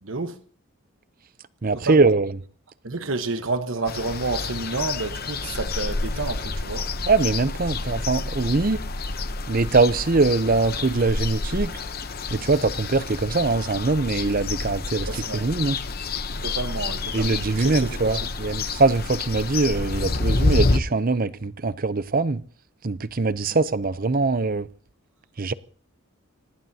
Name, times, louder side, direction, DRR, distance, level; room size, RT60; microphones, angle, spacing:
voice 1, 0.0-0.4 1.8-2.1 2.8-6.9 15.1-15.5 16.4-18.2, right 3 dB, 65° right, 1.3 m, -30 dB
voice 2, 1.6-2.4 7.1-8.8 9.5-11.8 12.3-15.1 15.3-15.8 17.1-22.4 22.8-24.7 25.4-25.5, right 3 dB, 40° right, 0.7 m, -22 dB
sound 1, 3.9-20.8, left 3 dB, 45° left, 0.9 m, -28 dB
26.0 x 19.0 x 2.9 m
head